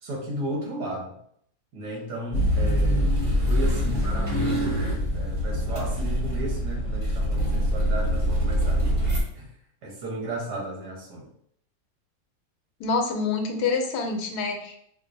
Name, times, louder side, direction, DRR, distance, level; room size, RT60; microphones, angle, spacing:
voice 1, 0.0-1.2 1.7-3.1 3.5-9.0 9.3-9.5 9.8-11.3, right 1 dB, 80° right, -2 dB, 1.6 m, -34 dB
sound 1, 2.3-9.2, equal, 25° right, 0.9 m, -24 dB
voice 2, 12.8-14.8, left 4 dB, 80° left, 4 dB, 1.2 m, -26 dB
5.1 x 2.1 x 2.6 m, 0.68 s
omnidirectional pair, 1.7 m